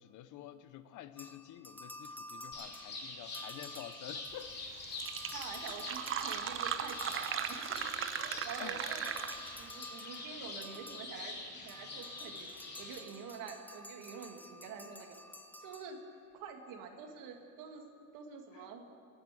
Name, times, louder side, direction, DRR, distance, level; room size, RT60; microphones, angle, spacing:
voice 1, 0.0-4.6 8.6-8.8 18.5-18.7, left 12 dB, 55° left, 13 dB, 0.8 m, -49 dB
sound 1, 1.2-4.6 4.9-8.4 9.0-16.3, left 1 dB, 5° left, 0.9 m, -52 dB
sound 2, 2.5-13.0, left 3 dB, 25° left, 3.2 m, -45 dB
Fill (with liquid), 4.5-4.6 4.8-9.6, right 9 dB, 35° right, 0.9 m, -38 dB
voice 2, 5.3-7.8 8.2-11.3 11.6-15.2 15.6-16.0 16.4-17.9 18.1-18.8, right 6 dB, 60° right, 4 dB, 2.3 m, -47 dB
18.5 x 8.8 x 8.4 m, 2.3 s
supercardioid pair, 115°, 37 cm